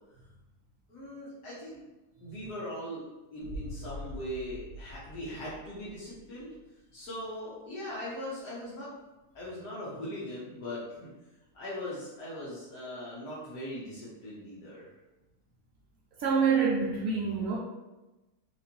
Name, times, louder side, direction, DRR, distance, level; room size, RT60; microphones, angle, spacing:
voice 1, 0.9-1.8 2.2-3.0 3.3-6.5 6.9-8.9 9.3-11.1 11.5-14.9, left 1 dB, 70° left, -8 dB, 1.4 m, -40 dB
sound 1, 3.4-6.4, left 1 dB, 30° left, 1.5 m, -43 dB
voice 2, 16.2-17.6, right 5 dB, 70° right, -5 dB, 0.9 m, -26 dB
4.7 x 2.5 x 2.8 m, 1.1 s
omnidirectional pair, 1.8 m